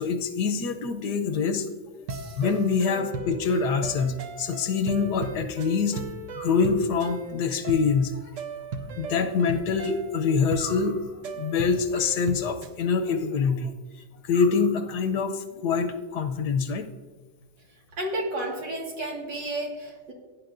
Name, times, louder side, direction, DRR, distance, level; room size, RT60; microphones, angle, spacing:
voice 1, 0.0-1.7 2.4-6.0 6.4-8.1 9.0-11.0 11.3-13.7 14.2-16.9, left 5 dB, 70° left, 7 dB, 1.2 m, -25 dB
sound 1, 2.1-12.8, right 4 dB, 55° right, 0.9 m, -37 dB
sound 2, 2.4-3.2 6.3-7.3 10.5-11.6 14.3-15.3, left 2 dB, 40° right, 2.9 m, -47 dB
voice 2, 18.0-20.1, right 1 dB, 80° right, -1 dB, 2.5 m, -31 dB
16.5 x 9.7 x 2.5 m, 1.3 s
omnidirectional pair, 1.9 m